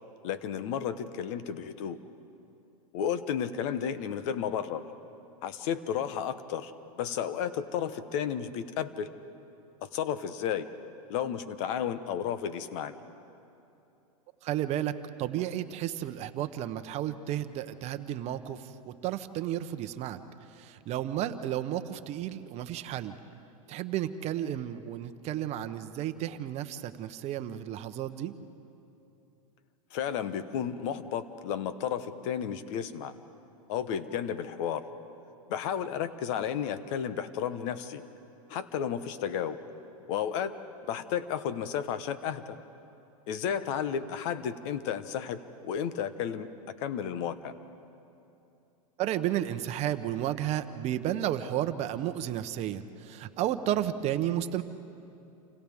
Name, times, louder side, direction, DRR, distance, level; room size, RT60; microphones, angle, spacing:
voice 1, 0.2-2.0 2.9-4.8 5.4-9.1 9.8-10.7 11.1-13.0 29.9-33.1 33.7-34.8 35.5-38.0 38.5-39.6 40.1-40.5 40.9-42.6 43.3-46.5 46.8-47.5, left 8 dB, 55° left, 13 dB, 1.1 m, -32 dB
voice 2, 14.4-20.2 20.5-23.1 23.7-28.3 49.0-54.6, right 12 dB, 35° right, 10 dB, 0.9 m, -32 dB
29.0 x 25.0 x 3.6 m, 2.8 s
hypercardioid pair, 125°, 18 cm